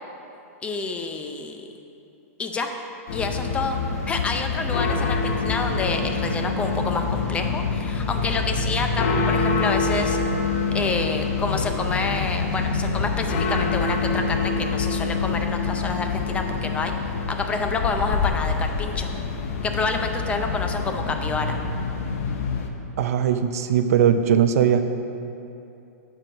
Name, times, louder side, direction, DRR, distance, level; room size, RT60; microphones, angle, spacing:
voice 1, 0.6-1.7 2.4-2.7 3.1-3.8 4.1-10.2 10.7-16.9 17.3-19.1 19.6-21.6, left 3 dB, 15° left, 5 dB, 0.5 m, -28 dB
sound 1, 3.1-22.7, left 4 dB, 65° left, 0.8 m, -26 dB
voice 2, 23.0-24.8, right 8 dB, 70° right, 8 dB, 0.5 m, -19 dB
7.6 x 4.7 x 6.2 m, 2.8 s
hypercardioid pair, 140°, 8 cm